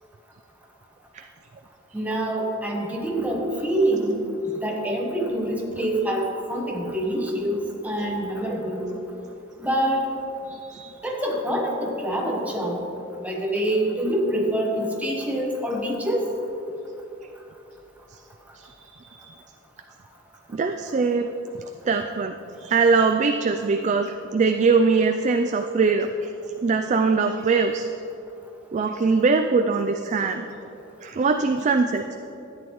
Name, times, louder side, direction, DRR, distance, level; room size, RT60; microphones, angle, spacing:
voice 1, 1.9-4.2 4.6-6.2 6.5-7.6 7.8-8.9 9.6-10.0 11.0-12.8 13.2-16.2, right 1 dB, 10° right, -1 dB, 1.2 m, -25 dB
voice 2, 10.5-10.9 18.5-19.3 20.5-21.3 21.9-26.3 26.6-27.9 28.7-30.4 31.0-32.1, right 4 dB, 40° right, 5 dB, 0.3 m, -22 dB
13.0 x 9.1 x 3.1 m, 3.0 s
head